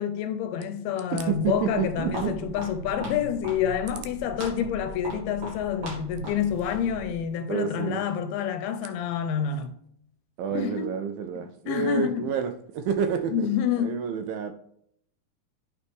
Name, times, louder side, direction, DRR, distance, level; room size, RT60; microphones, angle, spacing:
voice 1, 0.0-9.7 10.5-10.9 11.4-12.2 13.3-14.0, left 8 dB, 85° left, 2.6 m, -28 dB
voice 2, 1.1-2.5 7.5-8.0 10.4-13.5 13.8-14.5, right 7 dB, 80° right, 2.1 m, -29 dB
Walk footsteps, 1.2-7.3, right 1 dB, 55° right, 3.3 m, -39 dB
8.8 x 4.2 x 3.5 m
omnidirectional pair, 4.4 m